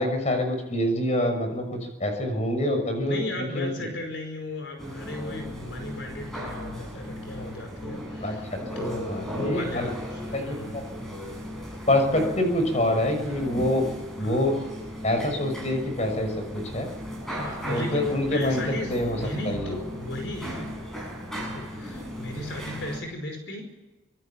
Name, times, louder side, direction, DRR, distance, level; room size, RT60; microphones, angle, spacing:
voice 1, 0.0-3.9 8.2-8.6 9.1-9.9 10.3-10.4 11.9-13.9 14.2-14.5 15.0-16.9 17.7-18.6 18.9-19.2 19.4-19.7, left 1 dB, 35° left, 5 dB, 6.3 m, -26 dB
voice 2, 3.0-8.5 8.7-10.7 14.2-14.5 17.4-18.9 19.2-23.6, left 1 dB, 70° left, 5 dB, 5.1 m, -36 dB
sound 1, 4.8-23.0, equal, ahead, 7.3 m, -36 dB
25.0 x 21.5 x 8.8 m, 1.0 s
head